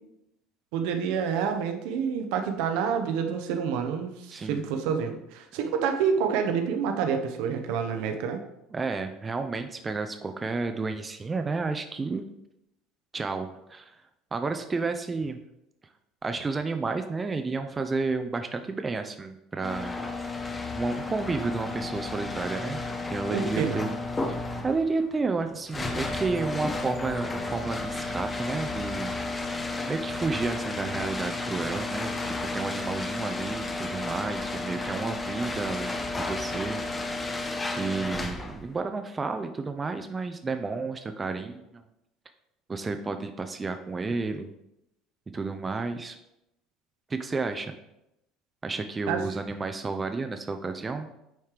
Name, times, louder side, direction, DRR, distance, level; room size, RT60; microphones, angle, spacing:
voice 1, 0.7-8.4 23.3-23.9 49.1-49.2, right 7 dB, 60° right, 5 dB, 0.8 m, -28 dB
voice 2, 4.3-4.6 8.7-12.3 13.1-14.0 14.3-15.4 16.2-20.0 20.7-22.8 23.1-24.0 24.2-29.4 29.9-32.1 32.5-36.8 37.2-37.3 37.8-41.8 42.7-44.5 45.3-46.2 47.1-47.7 48.6-51.1, right 4 dB, 25° right, 7 dB, 0.5 m, -31 dB
sound 1, 19.6-38.7, left 2 dB, 20° left, 0.9 m, -32 dB
9.2 x 4.3 x 3.3 m, 0.86 s
figure-of-eight pair, 65°, 0 cm